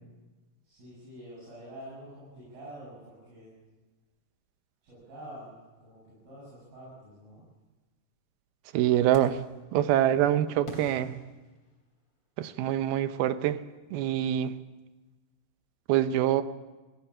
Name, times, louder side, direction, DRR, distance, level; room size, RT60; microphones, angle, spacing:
voice 1, 0.6-3.5 4.8-7.4, right 1 dB, 70° right, -8 dB, 9.7 m, -47 dB
voice 2, 8.7-9.4 9.7-11.2 12.4-13.6 13.9-14.5 15.9-16.4, right 12 dB, 90° right, 12 dB, 2.8 m, -25 dB
sound 1, 9.1-9.6 10.6-12.2, left 1 dB, 40° left, 4.1 m, -46 dB
18.0 x 17.5 x 8.8 m, 1.2 s
omnidirectional pair, 4.3 m